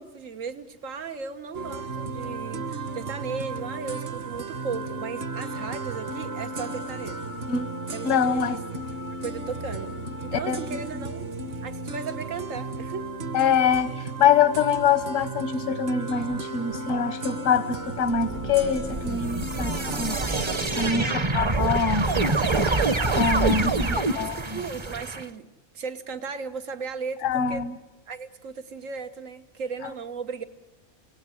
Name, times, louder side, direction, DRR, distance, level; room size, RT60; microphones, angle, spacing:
voice 1, 0.0-7.2 7.9-8.8 9.2-11.3 11.6-13.1 20.6-21.3 23.6-25.5 25.7-27.6 28.1-30.4, right 5 dB, 85° right, 9 dB, 1.7 m, -36 dB
sound 1, 1.5-20.7, right 2 dB, 50° right, 1.3 m, -35 dB
voice 2, 8.0-8.6 10.3-10.8 13.3-20.2 20.6-22.1 23.1-24.6 27.2-27.8, left 6 dB, 80° left, 11 dB, 1.4 m, -24 dB
sound 2, 18.1-25.2, right 3 dB, 25° right, 0.8 m, -26 dB
28.5 x 18.0 x 9.8 m, 1.2 s
omnidirectional pair, 1.3 m